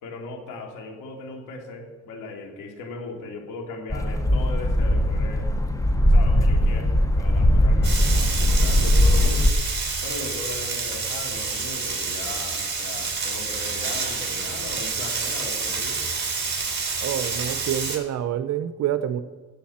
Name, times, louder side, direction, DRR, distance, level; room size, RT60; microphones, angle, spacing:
voice 1, 0.0-5.5 6.1-9.5 10.0-16.0, left 3 dB, 85° left, 1 dB, 2.5 m, -37 dB
sound 1, 3.9-9.5, left 1 dB, 10° left, 0.9 m, -19 dB
Frying (food), 7.8-18.0, right 4 dB, 35° right, 3.8 m, -28 dB
voice 2, 17.0-19.2, right 10 dB, 60° right, 11 dB, 0.7 m, -27 dB
16.5 x 8.1 x 4.3 m, 1.3 s
cardioid pair, 90°, 30 cm